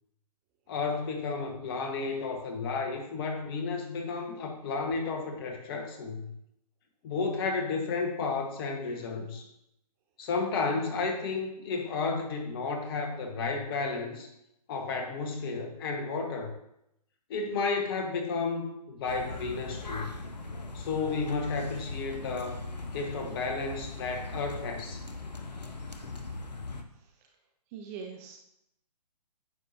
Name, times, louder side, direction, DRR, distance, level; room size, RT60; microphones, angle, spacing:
voice 1, 0.7-6.3 7.0-9.4 10.2-14.3 14.7-16.5 17.3-20.1 20.7-22.6 22.9-25.0, left 4 dB, 35° left, 3 dB, 1.3 m, -32 dB
sound 1, 19.1-26.8, left 3 dB, 85° left, 1.0 m, -40 dB
voice 2, 27.7-28.4, right 6 dB, 20° right, 3 dB, 0.6 m, -41 dB
9.4 x 6.5 x 2.7 m, 0.79 s
figure-of-eight pair, 135°, 21 cm